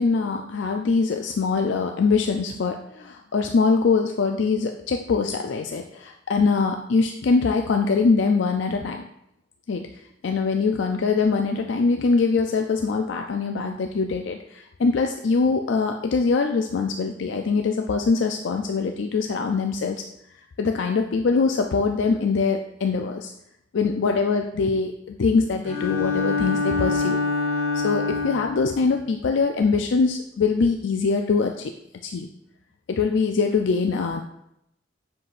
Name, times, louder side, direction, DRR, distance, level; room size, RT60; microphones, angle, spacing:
voice 1, 0.0-9.0 9.7-20.0 20.6-23.3 23.7-27.2 27.7-31.7 32.0-32.3 32.9-34.2, left 4 dB, 65° left, 4 dB, 0.4 m, -23 dB
Bowed string instrument, 25.6-28.7, left 4 dB, 65° right, 1.5 m, -25 dB
7.7 x 6.0 x 2.5 m, 0.79 s
head